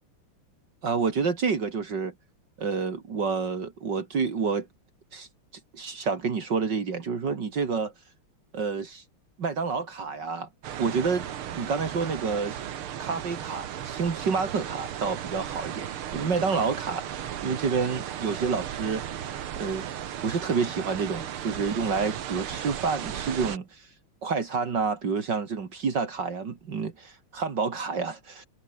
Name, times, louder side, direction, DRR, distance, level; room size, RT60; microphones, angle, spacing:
voice 1, 0.8-2.1 2.6-4.7 5.1-5.3 5.7-7.9 8.5-9.0 9.4-10.5 10.8-12.6 13.0-19.0 19.6-19.9 20.2-23.9 24.2-28.5, right 5 dB, 55° right, 2.8 m, -29 dB
sound 1, 10.6-23.6, right 10 dB, 80° right, 2.2 m, -36 dB
omnidirectional pair, 2.3 m